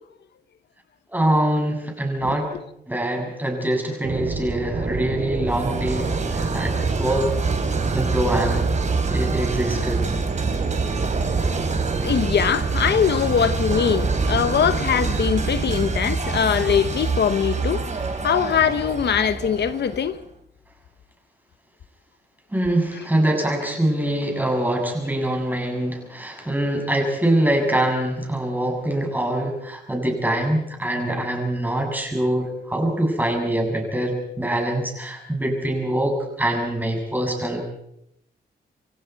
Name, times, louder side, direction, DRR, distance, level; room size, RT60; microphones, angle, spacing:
voice 1, 1.1-2.5 2.9-7.3 7.9-8.7 9.1-10.0 22.5-37.6, right 1 dB, 10° right, 7.1 m, -24 dB
sound 1, 4.0-15.9, right 4 dB, 60° right, 3.7 m, -28 dB
sound 2, 5.5-20.2, right 4 dB, 45° right, 3.4 m, -27 dB
voice 2, 12.0-17.8 18.2-20.2 23.0-23.1, left 8 dB, 80° left, 1.0 m, -22 dB
29.0 x 24.0 x 4.7 m
wide cardioid pair, 120°, 17 cm